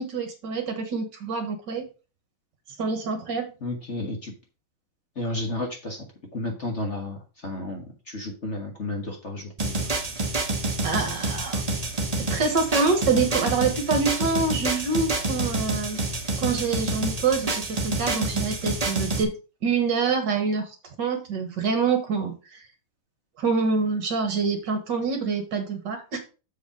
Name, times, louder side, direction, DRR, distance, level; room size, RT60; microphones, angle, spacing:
voice 1, 0.0-1.9 2.8-3.5 10.8-11.6 12.2-16.0 16.4-19.3 19.6-20.7 21.0-22.6 23.4-26.2, right 4 dB, 55° right, 6 dB, 1.8 m, -26 dB
voice 2, 3.6-4.3 5.1-6.1 6.3-9.9, left 2 dB, 35° left, 1 dB, 1.5 m, -32 dB
sound 1, 9.6-19.2, right 2 dB, 30° right, 0.7 m, -28 dB
7.1 x 5.0 x 4.7 m, 0.31 s
omnidirectional pair, 2.4 m